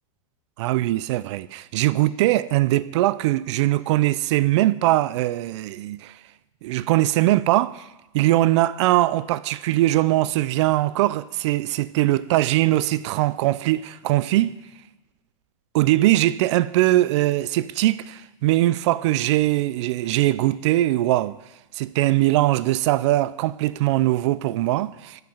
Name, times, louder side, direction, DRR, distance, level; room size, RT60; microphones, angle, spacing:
voice 1, 0.6-6.1 6.6-7.9 8.1-14.6 15.7-21.4 21.7-25.2, right 16 dB, 55° right, 0.4 m, -21 dB
7.8 x 6.9 x 5.5 m
supercardioid pair, 140°, 18 cm